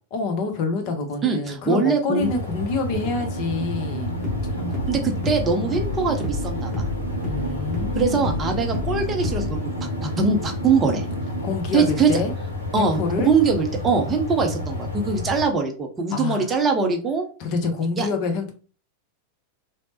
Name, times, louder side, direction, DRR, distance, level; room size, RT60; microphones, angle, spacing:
voice 1, 0.1-4.1 4.5-4.8 7.2-8.6 11.4-12.3 12.8-13.3 16.1-16.5 17.4-18.5, left 3 dB, 45° left, 5 dB, 0.6 m, -27 dB
voice 2, 1.2-2.3 4.9-6.7 8.0-9.5 10.0-11.1 11.7-12.1 12.7-17.3 18.0-18.1, right 4 dB, 20° right, 3 dB, 0.5 m, -22 dB
sound 1, 2.2-15.5, left 2 dB, 80° left, 0.6 m, -31 dB
sound 2, 2.8-11.5, right 3 dB, 90° right, 0.5 m, -34 dB
sound 3, 4.0-9.6, left 2 dB, 10° left, 1.1 m, -31 dB
3.1 x 2.0 x 2.6 m, 0.37 s
figure-of-eight pair, 90°, 0 cm